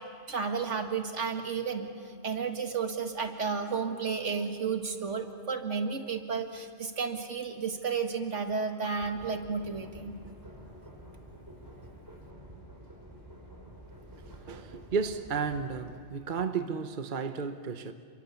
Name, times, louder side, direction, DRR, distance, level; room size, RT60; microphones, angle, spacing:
voice 1, 0.3-1.9 2.2-10.1, right 5 dB, 75° right, 2.1 m, -32 dB
sound 1, 9.0-16.0, right 1 dB, 15° right, 5.0 m, -49 dB
voice 2, 14.2-17.9, right 5 dB, 45° right, 1.0 m, -33 dB
29.5 x 23.0 x 7.0 m
omnidirectional pair, 1.3 m